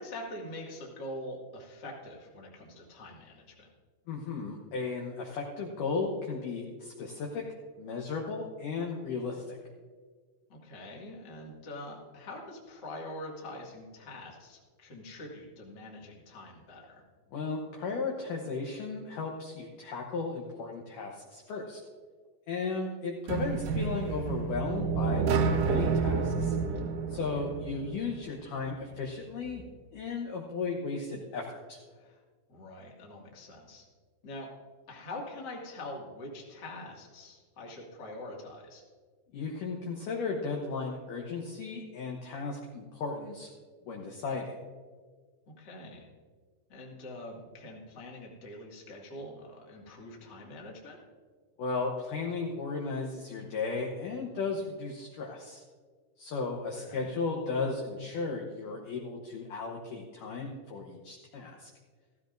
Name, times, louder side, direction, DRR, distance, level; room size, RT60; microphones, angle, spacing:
voice 1, 0.0-3.7 10.5-17.0 23.4-23.7 27.1-27.4 31.9-32.2 32.5-33.9 34.2-34.5 34.9-38.8 45.6-46.1 46.7-51.0 56.8-57.1, left 1 dB, 35° left, -2 dB, 1.9 m, -44 dB
voice 2, 4.1-7.4 7.8-9.6 17.3-21.8 22.5-26.6 27.1-29.6 29.9-31.8 39.3-43.5 43.9-44.6 51.6-55.6 56.2-61.7, left 4 dB, 70° left, 0 dB, 2.2 m, -35 dB
sound 1, 23.3-28.2, right 5 dB, 75° right, 1.9 m, -29 dB
15.5 x 15.0 x 2.6 m, 1.6 s
omnidirectional pair, 4.7 m